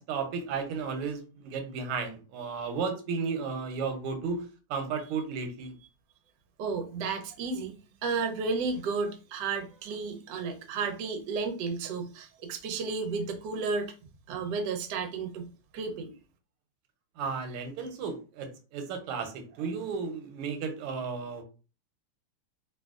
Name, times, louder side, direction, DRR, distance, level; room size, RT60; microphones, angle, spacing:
voice 1, 0.0-5.7 17.2-21.4, right 5 dB, 90° right, 5 dB, 1.6 m, -34 dB
voice 2, 6.6-7.7 8.0-13.9 14.3-16.2, right 4 dB, 70° right, 5 dB, 1.0 m, -33 dB
3.4 x 2.5 x 2.3 m, 0.34 s
omnidirectional pair, 2.4 m